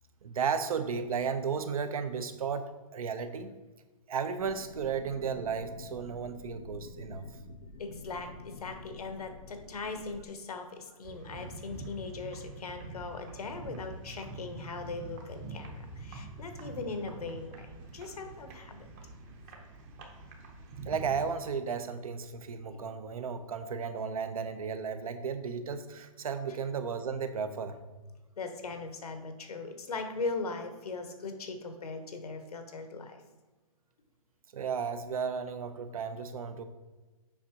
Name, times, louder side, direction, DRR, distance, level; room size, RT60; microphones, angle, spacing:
voice 1, 0.2-3.6 4.1-7.3 20.9-27.8 34.5-36.6, right 6 dB, 75° right, 10 dB, 0.7 m, -34 dB
sound 1, 4.4-10.3, left 4 dB, 60° left, 0.6 m, -49 dB
voice 2, 7.8-18.9 22.7-22.9 28.4-33.2, left 3 dB, 90° left, 6 dB, 1.0 m, -39 dB
sound 2, 11.0-21.3, right 2 dB, 25° right, 0.8 m, -45 dB
7.1 x 5.3 x 2.8 m, 1.2 s
hypercardioid pair, 155°, 19 cm